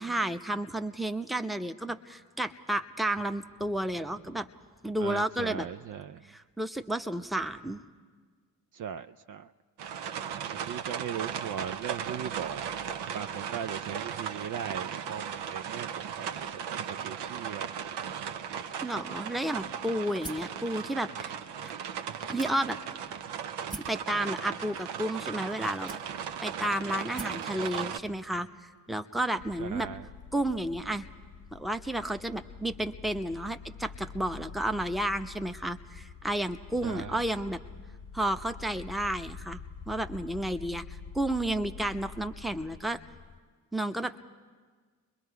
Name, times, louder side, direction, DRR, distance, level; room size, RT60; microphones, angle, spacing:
voice 1, 0.0-4.5 4.8-5.7 6.3-7.8 18.8-21.3 21.6-21.7 22.3-22.8 23.9-26.0 26.4-28.5 28.9-29.9 30.3-31.1 31.5-37.6 38.1-43.0 43.7-44.2, right 1 dB, ahead, 8 dB, 0.8 m, -32 dB
voice 2, 5.0-6.3 8.7-9.5 10.5-12.7 13.1-16.3 16.5-17.8 26.9-27.1 29.6-30.1 36.8-37.2, right 8 dB, 45° right, 9 dB, 0.5 m, -39 dB
sound 1, 9.8-28.0, right 8 dB, 65° right, 0.9 m, -37 dB
sound 2, 20.2-20.6 21.3-21.4 22.4-22.9 23.7-24.0 25.0-25.1 25.9-26.4 27.2-27.5, right 2 dB, 20° right, 1.6 m, -43 dB
sound 3, 29.4-43.4, left 6 dB, 35° left, 0.9 m, -46 dB
30.0 x 22.0 x 4.7 m, 1.5 s
hypercardioid pair, 40°, 44 cm